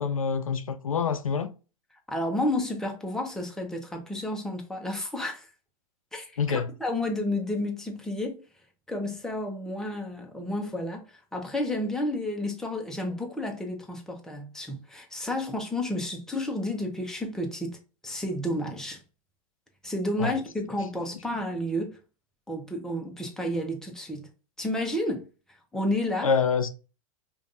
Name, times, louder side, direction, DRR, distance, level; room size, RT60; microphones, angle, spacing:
voice 1, 0.0-1.5 6.4-6.7 20.2-20.3 26.2-26.7, left 6 dB, 80° left, 0.5 m, -26 dB
voice 2, 2.1-5.5 6.1-8.4 8.9-17.8 18.0-19.0 19.8-22.0 22.5-24.3 24.6-25.3 25.7-26.3, left 1 dB, 5° left, 0.9 m, -31 dB
5.0 x 2.6 x 2.5 m
figure-of-eight pair, 95°, 17 cm